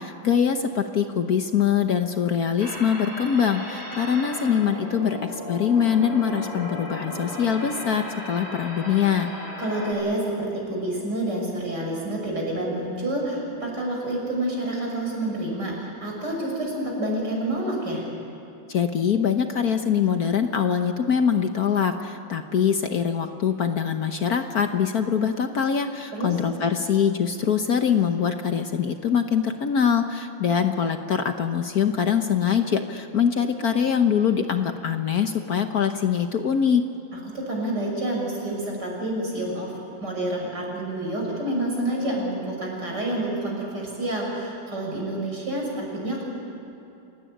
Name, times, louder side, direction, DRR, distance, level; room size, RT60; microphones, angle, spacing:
voice 1, 0.0-9.3 18.7-36.8, left 7 dB, 55° left, 6 dB, 1.4 m, -23 dB
sound 1, 2.6-9.9, left 1 dB, 30° left, 7.2 m, -36 dB
voice 2, 9.6-18.1 26.1-26.3 37.3-39.7 40.0-46.2, right 1 dB, 60° right, -1 dB, 7.1 m, -28 dB
29.0 x 17.5 x 9.8 m, 2.8 s
omnidirectional pair, 2.1 m